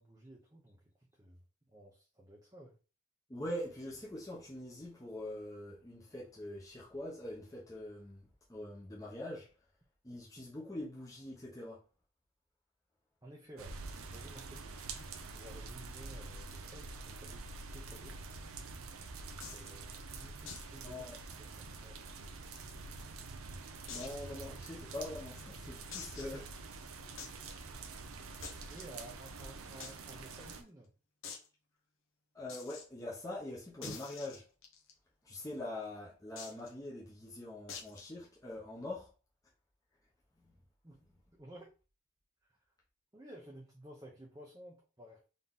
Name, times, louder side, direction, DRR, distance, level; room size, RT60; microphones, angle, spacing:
voice 1, 0.0-1.4 1.7-2.8 13.2-18.2 19.2-21.1 21.4-22.0 28.7-30.9 40.8-41.0 41.3-41.7 43.1-45.3, right 1 dB, 15° right, 0.7 m, -54 dB
voice 2, 3.3-9.5 10.0-11.8 20.8-21.2 23.9-26.5 32.3-34.5 35.2-39.1, left 1 dB, 15° left, 0.9 m, -43 dB
sound 1, 13.6-30.6, right 3 dB, 85° right, 0.7 m, -47 dB
sound 2, 19.4-19.7 20.5-20.7 21.0-21.1 21.5-21.6 22.2-23.0 23.9-24.2 24.8-24.9 25.9-26.4 27.2-27.4 28.4-28.9 29.8-29.9 30.2-30.3 30.5-30.6 31.2-31.5 32.5-32.8 33.8-34.9 36.4-36.7 37.7-38.1, left 5 dB, 70° left, 1.0 m, -46 dB
4.1 x 2.9 x 3.6 m
head